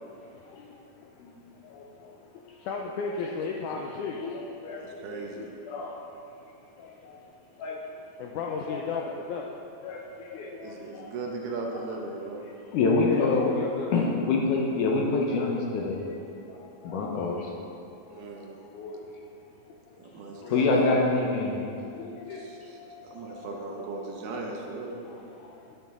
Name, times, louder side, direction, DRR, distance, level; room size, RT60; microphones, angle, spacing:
voice 1, 0.0-4.2 8.2-9.5 11.1-11.2 13.0-14.1 16.6-17.3 17.8-18.9 19.9-20.5 21.6-24.1 24.5-24.6 25.2-25.8, left 5 dB, 90° left, 0 dB, 1.7 m, -38 dB
voice 2, 1.7-2.1 3.0-3.2 3.6-3.7 4.2-6.0 6.8-7.2 7.6-7.8 8.7-9.0 9.8-11.1 12.4-13.5 13.9-16.0 16.5-17.5 18.7-19.3 20.4-21.7 22.0-22.4 24.2-24.4 25.1-25.5, left 3 dB, 70° left, -1 dB, 2.1 m, -28 dB
voice 3, 4.8-5.5 10.6-12.5 18.1-18.5 20.0-20.7 22.3-25.0, right 3 dB, 70° right, 0 dB, 2.4 m, -38 dB
10.5 x 9.8 x 3.7 m, 2.6 s
omnidirectional pair, 4.2 m